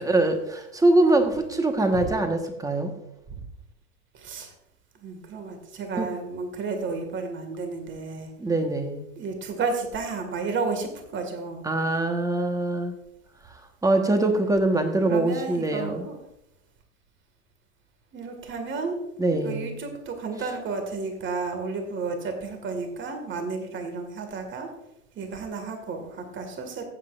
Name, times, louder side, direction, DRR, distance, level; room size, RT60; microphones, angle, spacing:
voice 1, 0.0-2.9 6.0-6.1 8.4-9.0 11.6-12.9 13.8-16.1 19.2-19.7, right 2 dB, 10° right, 5 dB, 1.3 m, -23 dB
voice 2, 4.1-4.5 5.0-8.3 9.2-11.7 15.0-16.2 18.1-19.0 19.3-24.7 25.1-26.8, right 4 dB, 30° right, 5 dB, 2.0 m, -32 dB
14.5 x 7.7 x 2.5 m, 0.82 s
hypercardioid pair, 105°, 40 cm